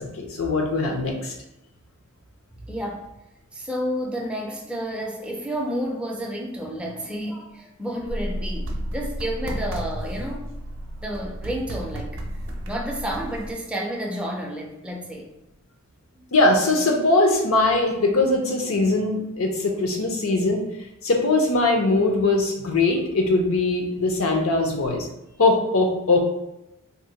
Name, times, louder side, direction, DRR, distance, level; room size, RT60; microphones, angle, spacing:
voice 1, 0.0-1.3 16.3-20.6 21.0-25.1 25.4-26.2, left 2 dB, 70° left, 2 dB, 0.6 m, -21 dB
voice 2, 2.5-3.1 3.5-10.5 11.0-12.2 12.7-15.3 16.2-16.3, equal, 5° right, -1 dB, 0.4 m, -30 dB
sound 1, 8.1-13.5, right 1 dB, 60° right, 0.5 m, -32 dB
2.7 x 2.1 x 3.9 m, 0.90 s
head